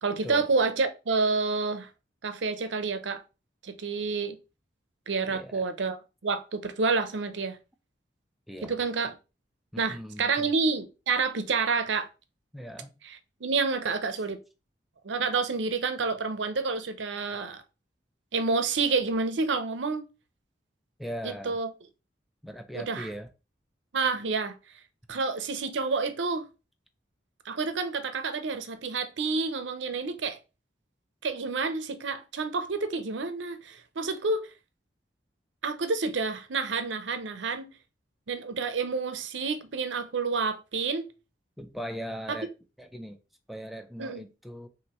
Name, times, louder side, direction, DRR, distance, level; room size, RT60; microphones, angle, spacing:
voice 1, 0.0-1.9 2.2-3.2 3.6-4.4 5.1-7.6 8.6-9.1 9.8-12.1 13.0-14.4 15.0-17.6 18.3-20.0 21.2-21.7 22.7-23.1 23.9-24.6 25.1-26.5 27.5-30.4 31.2-34.5 35.6-37.7 38.3-41.1 42.3-42.4 44.0-44.2, right 4 dB, 85° right, 0.6 m, -29 dB
voice 2, 5.3-5.7 8.5-8.7 9.7-10.5 12.5-12.9 21.0-21.6 22.4-23.3 25.1-25.2 41.6-42.5 42.8-43.2 43.5-44.7, equal, ahead, 0.4 m, -39 dB
5.9 x 2.6 x 3.0 m
head